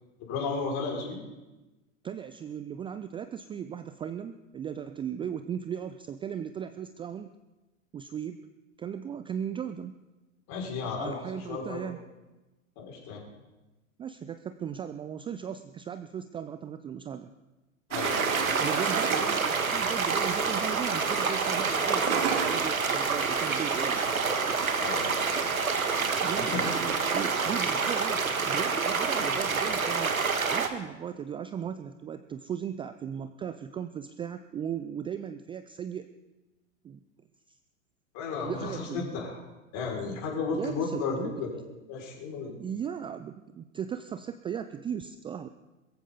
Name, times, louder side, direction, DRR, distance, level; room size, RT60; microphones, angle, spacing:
voice 1, 0.2-1.2 10.5-11.9 12.8-13.2 17.9-18.5 24.8-25.3 25.6-26.2 26.5-26.7 38.1-39.4 39.7-42.5, left 4 dB, 40° left, -1 dB, 6.0 m, -34 dB
voice 2, 2.0-7.3 7.9-8.4 8.8-10.0 10.8-12.0 14.0-17.3 18.6-24.0 26.2-30.1 30.5-36.1 36.8-37.0 37.5-37.6 38.4-39.2 40.5-41.3 42.6-45.5, right 8 dB, 15° right, 10 dB, 0.4 m, -37 dB
sound 1, 17.9-28.3, right 6 dB, 60° right, 2.9 m, -36 dB
sound 2, 18.0-30.7, right 4 dB, 85° right, 1.7 m, -28 dB
21.5 x 14.5 x 4.1 m, 1.1 s
figure-of-eight pair, 95°, 41 cm